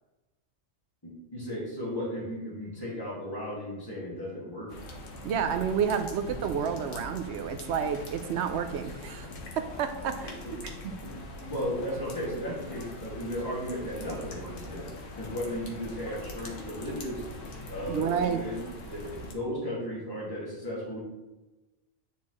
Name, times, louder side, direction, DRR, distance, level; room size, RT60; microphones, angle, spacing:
voice 1, 1.0-4.7 10.2-10.6 11.0-14.9 15.1-18.6 18.9-21.0, equal, 15° left, -7 dB, 2.0 m, -35 dB
sound 1, 4.7-19.3, left 2 dB, 70° left, 1.3 m, -42 dB
voice 2, 5.2-9.3 9.6-10.4 10.6-11.0 17.9-18.4, right 7 dB, 65° right, 8 dB, 0.8 m, -30 dB
9.5 x 4.2 x 3.1 m, 1.1 s
omnidirectional pair, 1.3 m